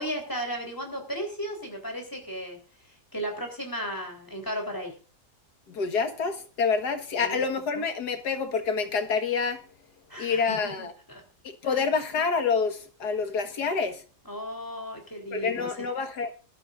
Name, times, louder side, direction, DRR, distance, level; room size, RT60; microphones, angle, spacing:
voice 1, 0.0-2.6 3.1-4.9 7.1-7.4 10.1-11.2 11.6-11.8 14.3-15.7, equal, 10° left, 3.9 m, -35 dB
voice 2, 5.7-9.6 10.2-10.9 11.4-14.0 15.3-16.3, left 5 dB, 75° left, 2.1 m, -27 dB
20.0 x 12.5 x 2.6 m
omnidirectional pair, 1.8 m